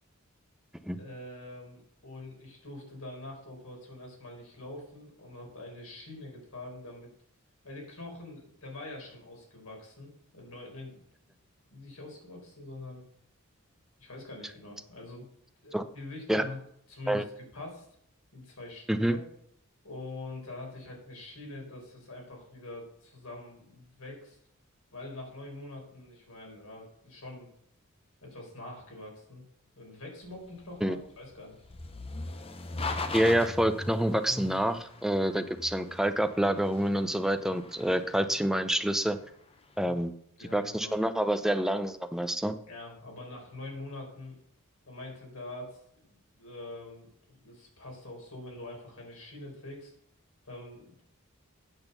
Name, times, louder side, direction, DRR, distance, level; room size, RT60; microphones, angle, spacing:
voice 1, 1.0-7.1 7.6-11.0 11.3-11.4 11.7-13.0 14.0-15.3 15.6-16.6 16.9-17.9 18.3-19.2 19.8-24.4 24.9-27.5 28.2-29.4 29.8-31.6 39.8-40.0 40.4-41.0 42.7-44.4 44.9-49.9 50.4-51.0, left 2 dB, 80° left, 0 dB, 4.2 m, -44 dB
sound 1, 30.2-39.5, left 2 dB, 25° left, 0.8 m, -40 dB
voice 2, 33.1-39.2 39.8-40.1 40.5-42.5, right 1 dB, ahead, 9 dB, 0.6 m, -27 dB
9.0 x 6.2 x 6.9 m, 0.70 s
head